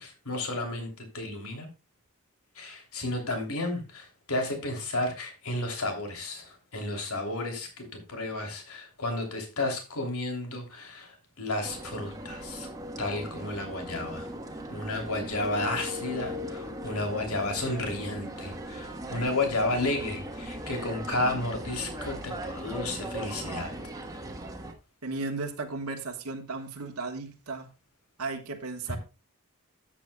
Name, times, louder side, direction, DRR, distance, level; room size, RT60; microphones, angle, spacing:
voice 1, 0.0-1.7 2.5-12.7 13.0-14.3 14.7-23.7 28.9-29.0, left 2 dB, 75° left, 3.0 m, -32 dB
sound 1, 11.6-24.7, equal, 15° right, 1.3 m, -38 dB
voice 2, 25.0-27.7 28.2-29.0, right 3 dB, 80° right, 1.4 m, -35 dB
13.5 x 8.6 x 2.3 m
head